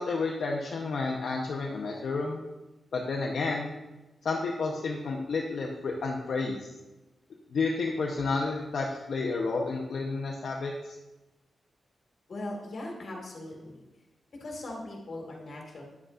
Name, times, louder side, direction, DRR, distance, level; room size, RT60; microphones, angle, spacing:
voice 1, 0.0-2.4 2.9-3.7 4.2-6.7 7.5-11.0, left 3 dB, 75° left, -1 dB, 0.8 m, -31 dB
voice 2, 12.3-13.8 14.4-15.8, left 1 dB, 55° left, 0 dB, 2.0 m, -39 dB
9.4 x 7.9 x 2.5 m, 1.0 s
wide cardioid pair, 100°, 0 cm